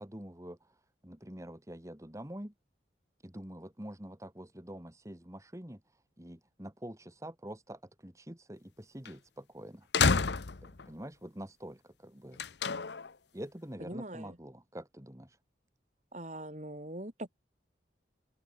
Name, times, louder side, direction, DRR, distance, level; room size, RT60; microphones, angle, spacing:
voice 1, 0.0-2.5 3.2-9.9 10.6-12.5 13.3-15.4, right 1 dB, 15° right, 2.1 m, -46 dB
sound 1, 9.1-9.2 9.9-10.9 12.4-13.1, left 5 dB, 70° left, 0.9 m, -29 dB
voice 2, 13.8-14.4 16.1-17.3, right 1 dB, 40° right, 4.8 m, -42 dB
open air
head